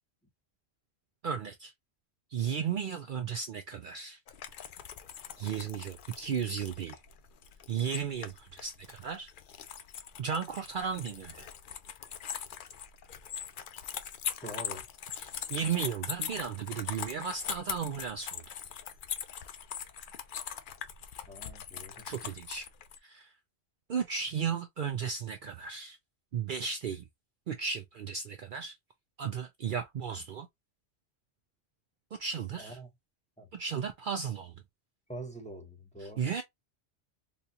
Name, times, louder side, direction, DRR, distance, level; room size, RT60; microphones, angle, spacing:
voice 1, 1.2-1.7 2.3-4.2 5.4-7.0 7.7-9.3 10.2-11.5 15.1-18.4 22.0-22.7 23.0-23.3 23.9-26.0 26.3-27.1 27.5-28.7 29.2-30.5 32.2-32.8 33.5-34.6 36.0-36.4, right 7 dB, 60° right, 0.6 m, -35 dB
sound 1, 4.3-23.0, left 8 dB, 60° left, 0.6 m, -41 dB
voice 2, 14.4-14.8 21.3-22.0 32.6-32.9 33.4-33.5 35.1-36.3, right 1 dB, 5° left, 0.9 m, -44 dB
4.1 x 2.3 x 2.7 m
omnidirectional pair, 1.1 m